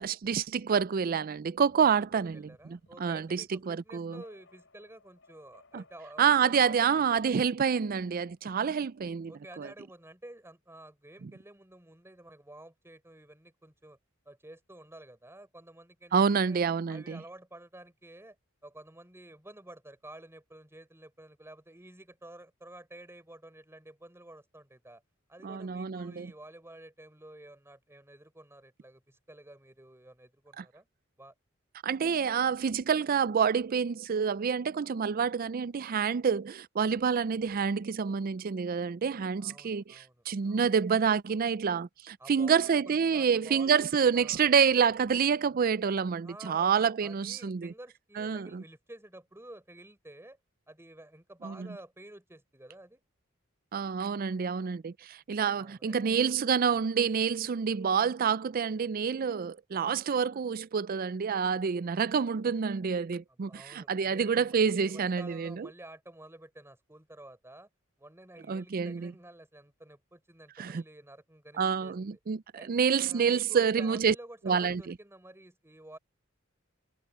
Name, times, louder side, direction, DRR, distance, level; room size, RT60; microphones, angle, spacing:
voice 1, 0.0-4.2 5.7-5.8 6.2-9.3 9.6-9.7 11.2-11.3 16.1-17.2 25.4-26.3 30.6-30.7 31.8-47.7 48.2-48.6 51.4-51.7 53.7-65.7 68.5-69.1 70.6-70.8 71.6-74.2 74.5-74.9, right 6 dB, 45° right, 0.4 m, -28 dB
sound 1, 1.5-9.2, left 3 dB, 65° left, 7.8 m, -65 dB
voice 2, 2.1-7.2 9.3-14.0 14.2-16.6 16.9-18.4 18.6-25.0 25.3-30.9 31.2-31.3 39.4-40.2 40.4-40.7 42.2-43.9 44.1-44.4 46.2-50.4 50.7-53.0 55.5-56.2 63.3-67.7 68.0-72.2 72.5-72.7 73.0-76.0, right 1 dB, 10° right, 4.7 m, -51 dB
head